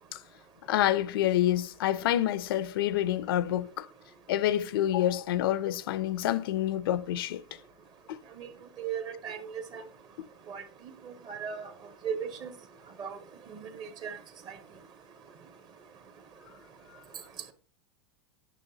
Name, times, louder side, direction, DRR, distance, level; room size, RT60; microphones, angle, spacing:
voice 1, 0.7-3.9 4.3-7.6 8.1-8.2, left 12 dB, 70° left, 0.5 m, -28 dB
voice 2, 8.8-9.4 9.7-9.8 10.5-10.6 11.0-11.7 12.0-12.5 13.0-13.2 13.5-14.2 14.5-14.6, right 7 dB, 35° right, 1.4 m, -37 dB
9.1 x 6.2 x 2.9 m
hypercardioid pair, 125°, 13 cm